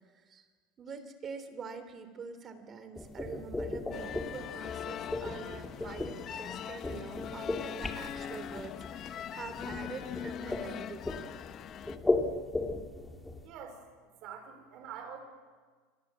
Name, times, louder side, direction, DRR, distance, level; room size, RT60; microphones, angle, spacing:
voice 1, 0.8-11.0, right 5 dB, 25° right, 10 dB, 2.9 m, -45 dB
sound 1, 2.9-13.5, left 2 dB, 10° left, 2.3 m, -36 dB
sound 2, 3.9-12.0, left 9 dB, 40° left, 1.2 m, -42 dB
voice 2, 13.4-15.2, right 7 dB, 50° right, 6 dB, 4.7 m, -46 dB
27.5 x 24.0 x 7.5 m, 1.5 s
supercardioid pair, 145°, 0 cm